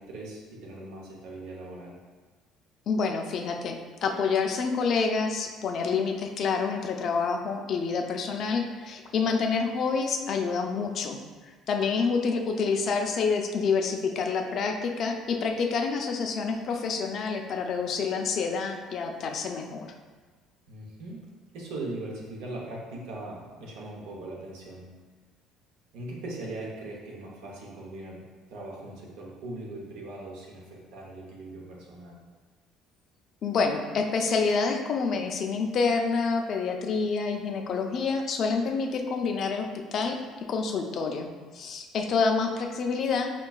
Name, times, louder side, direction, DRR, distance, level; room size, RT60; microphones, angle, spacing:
voice 1, 0.0-2.0 20.7-21.3 21.5-24.9 25.9-32.2, right 2 dB, 90° right, -3 dB, 0.7 m, -40 dB
voice 2, 2.9-11.2 11.7-19.9 33.4-40.2 40.5-43.3, left 5 dB, 45° left, 3 dB, 0.4 m, -27 dB
5.5 x 2.2 x 2.3 m, 1.3 s
cardioid pair, 155°, 0 cm